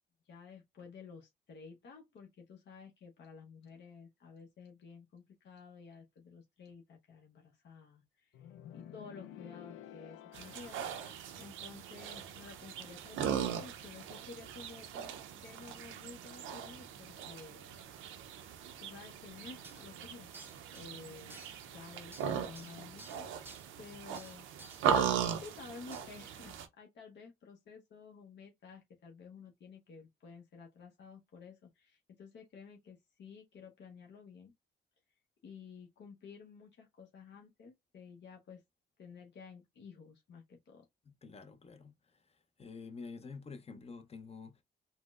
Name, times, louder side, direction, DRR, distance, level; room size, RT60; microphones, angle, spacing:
voice 1, 0.3-8.5 8.7-10.9 11.4-15.1 15.4-17.6 18.3-18.4 18.8-20.3 20.7-21.4 21.7-23.4 23.8-24.8 25.4-34.5 35.4-38.6 39.0-40.9, left 5 dB, 65° left, 0.9 m, -52 dB
sound 1, 8.3-11.3, left 11 dB, 90° left, 0.4 m, -51 dB
sound 2, 10.3-26.7, right 8 dB, 90° right, 0.6 m, -39 dB
sound 3, 19.6-19.9 20.3-20.9 21.3-21.7 22.1-23.6 24.1-24.9 25.2-25.6 25.9-26.0, right 2 dB, 10° right, 0.7 m, -54 dB
voice 2, 41.1-42.2 42.6-44.6, left 4 dB, 30° left, 0.6 m, -48 dB
4.2 x 2.1 x 2.3 m
cardioid pair, 90°, 20 cm